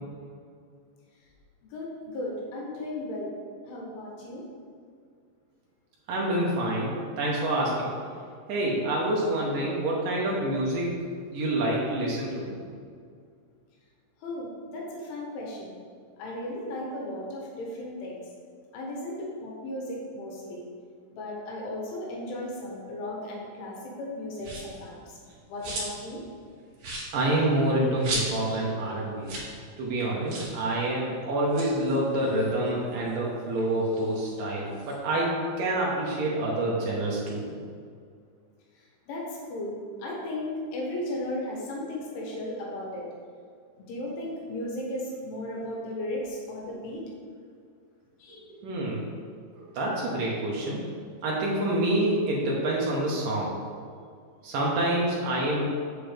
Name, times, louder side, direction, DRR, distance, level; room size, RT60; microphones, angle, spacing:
voice 1, 1.7-3.3 3.7-4.5 14.2-15.8 16.2-18.2 18.7-20.6 21.1-25.1 25.4-26.2 39.1-43.1 43.8-47.1 48.2-48.5, left 1 dB, 90° left, -2 dB, 3.9 m, -35 dB
voice 2, 6.1-7.9 8.5-10.9 11.3-12.5 27.1-29.3 29.8-37.4 48.3-49.0 49.6-50.8 51.2-53.5 54.4-55.6, right 1 dB, 75° right, -4 dB, 2.0 m, -27 dB
sound 1, 24.4-24.8 25.2-26.1 26.4-26.5 26.8-28.6 28.9-29.0 29.2-29.5 29.8-29.9 30.3-30.6 31.3-33.1 33.5-35.0, right 2 dB, 50° right, 2.8 m, -37 dB
8.0 x 7.6 x 3.4 m, 2.2 s
omnidirectional pair, 5.3 m